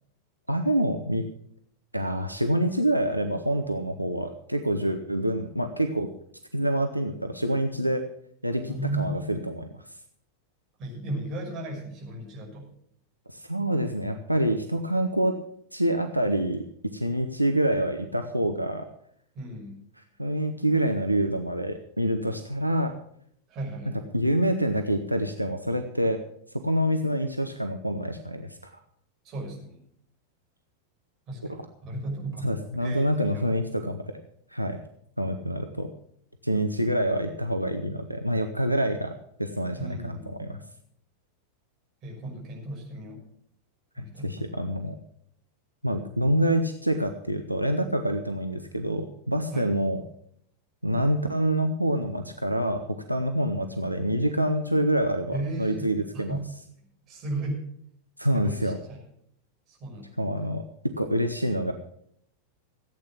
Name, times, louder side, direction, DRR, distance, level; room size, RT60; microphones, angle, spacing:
voice 1, 0.5-1.2 1.9-6.1 6.5-8.0 8.4-9.8 13.3-15.4 15.7-16.6 16.9-18.9 20.2-22.9 24.1-26.2 26.6-28.7 32.4-34.0 34.5-34.8 35.2-35.9 36.4-40.6 44.0-45.0 45.8-50.0 50.8-56.4 58.2-58.8 60.2-61.7, right 1 dB, 90° right, 6 dB, 0.9 m, -26 dB
voice 2, 8.7-9.2 10.8-12.7 19.3-19.8 23.5-24.1 29.2-29.8 31.3-31.4 31.8-32.5 32.8-33.4 39.8-40.6 42.0-43.2 43.9-44.5 49.5-49.7 55.3-56.5 57.1-57.7 58.3-59.0 59.7-60.1, right 2 dB, 35° right, -2 dB, 5.8 m, -35 dB
15.0 x 8.9 x 6.0 m, 0.68 s
figure-of-eight pair, 90°, 0 cm